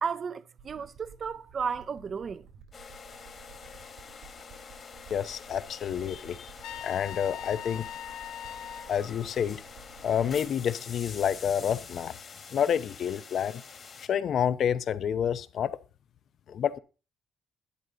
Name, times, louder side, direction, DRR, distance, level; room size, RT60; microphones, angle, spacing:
voice 1, 0.0-2.5, right 6 dB, 40° right, 0.7 m, -33 dB
sound 1, 0.6-10.6, right 5 dB, 80° right, 3.1 m, -54 dB
sound 2, 2.7-14.1, left 5 dB, 40° left, 2.0 m, -46 dB
voice 2, 5.1-7.9 8.9-9.6 10.0-12.1 12.5-13.6 14.1-15.8 16.5-16.8, left 8 dB, 55° left, 0.8 m, -29 dB
Trumpet, 6.6-8.9, left 11 dB, 85° left, 0.8 m, -40 dB
11.5 x 9.8 x 3.9 m
cardioid pair, 115°, 0 cm